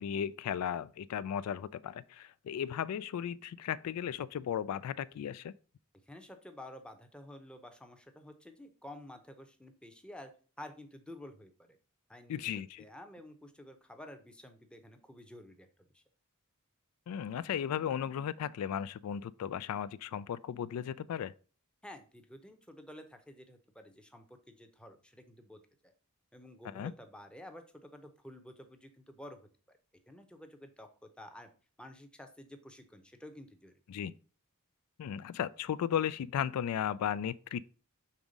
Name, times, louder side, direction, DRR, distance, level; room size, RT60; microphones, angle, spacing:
voice 1, 0.0-5.5 12.3-12.8 17.1-21.3 26.6-26.9 33.9-34.1 35.0-37.7, left 9 dB, 85° left, 0.3 m, -35 dB
voice 2, 6.1-10.3 10.6-11.8 12.1-16.0 21.8-25.9 26.3-29.4 29.7-29.8 30.1-31.5 31.8-33.7, left 1 dB, 5° left, 0.7 m, -51 dB
5.5 x 3.5 x 5.0 m
head